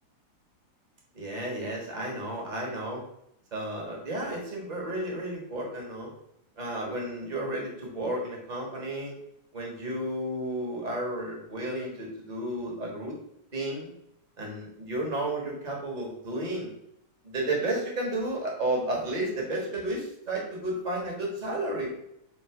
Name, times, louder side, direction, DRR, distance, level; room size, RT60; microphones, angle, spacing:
voice 1, 1.1-3.0 3.5-6.1 6.6-9.2 9.5-13.2 13.5-13.9 14.4-16.7 17.2-21.9, right 1 dB, 50° right, -1 dB, 0.5 m, -32 dB
7.1 x 2.9 x 4.7 m, 0.76 s
omnidirectional pair, 3.3 m